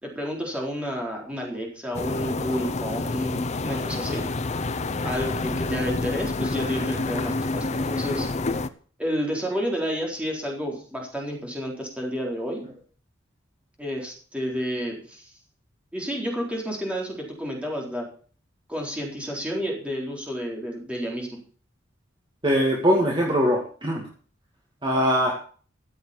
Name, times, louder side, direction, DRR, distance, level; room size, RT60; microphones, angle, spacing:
voice 1, 0.0-4.2 5.0-8.3 9.0-12.6 13.8-15.3 15.9-18.1 18.7-21.4, equal, 5° right, -1 dB, 4.2 m, -30 dB
sound 1, 1.9-8.7, left 3 dB, 35° left, 0.7 m, -28 dB
voice 2, 22.4-24.1 24.8-25.4, equal, 25° right, -1 dB, 2.2 m, -22 dB
14.0 x 7.8 x 7.2 m, 0.43 s
head